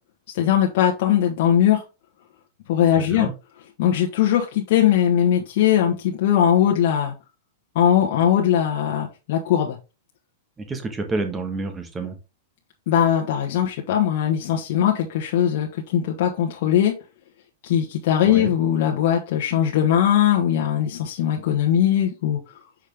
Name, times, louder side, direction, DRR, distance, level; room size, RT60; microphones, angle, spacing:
voice 1, 0.3-1.8 2.7-3.3 3.8-7.1 7.7-9.8 12.9-16.9 17.6-22.4, left 10 dB, 60° left, 0 dB, 1.2 m, -20 dB
voice 2, 3.0-3.3 10.6-12.2 18.3-18.5, right 3 dB, 15° right, 6 dB, 1.4 m, -29 dB
6.4 x 5.1 x 3.4 m, 0.28 s
supercardioid pair, 145°, 0 cm